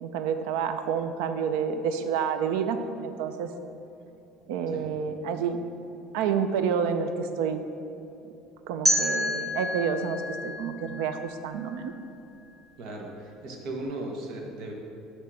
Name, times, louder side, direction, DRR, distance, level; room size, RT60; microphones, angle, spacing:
voice 1, 0.0-3.5 4.5-5.6 6.1-7.6 8.2-8.3 8.7-11.9, right 7 dB, 80° right, 9 dB, 0.5 m, -29 dB
sound 1, 8.9-11.8, equal, 20° right, 1.0 m, -29 dB
voice 2, 12.8-14.7, right 2 dB, 50° right, 0 dB, 1.2 m, -37 dB
8.5 x 3.4 x 6.3 m, 2.8 s
cardioid pair, 170°, 0 cm